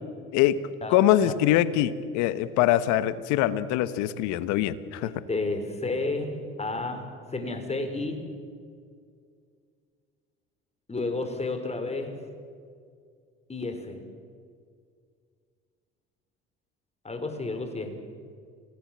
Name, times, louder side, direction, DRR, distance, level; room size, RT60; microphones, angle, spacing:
voice 1, 0.9-5.1, left 13 dB, 70° left, 15 dB, 1.2 m, -23 dB
voice 2, 5.0-8.3 10.9-12.2 13.5-14.0 17.0-17.9, left 3 dB, 20° left, 6 dB, 4.4 m, -31 dB
26.5 x 18.0 x 7.6 m, 2.2 s
hypercardioid pair, 65°, 30 cm